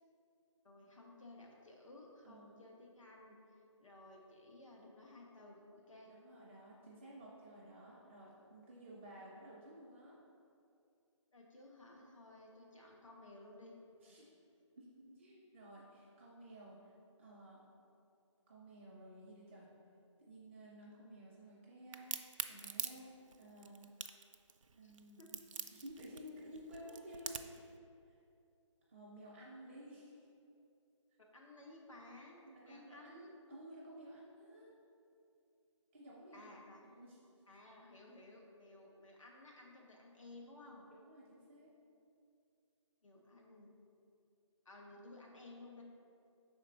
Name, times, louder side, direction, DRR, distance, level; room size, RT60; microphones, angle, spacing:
voice 1, 0.6-3.4 3.8-6.1 11.3-13.7 24.8-25.3 31.3-32.4 32.6-33.3 36.3-36.8 37.5-40.8 43.0-43.7 44.6-45.8, left 2 dB, 80° left, -1 dB, 1.3 m, -56 dB
voice 2, 2.2-2.6 5.9-10.2 14.0-14.4 14.8-16.9 17.2-17.6 18.5-19.7 20.2-23.9 24.7-27.8 28.1-28.2 28.9-30.1 32.4-34.7 35.9-36.6 36.8-37.2 40.6-41.7, right 1 dB, 10° right, -6 dB, 0.4 m, -54 dB
Crack, 21.9-27.6, right 5 dB, 80° right, 0.4 m, -43 dB
6.0 x 4.2 x 4.0 m, 2.6 s
hypercardioid pair, 170°, 16 cm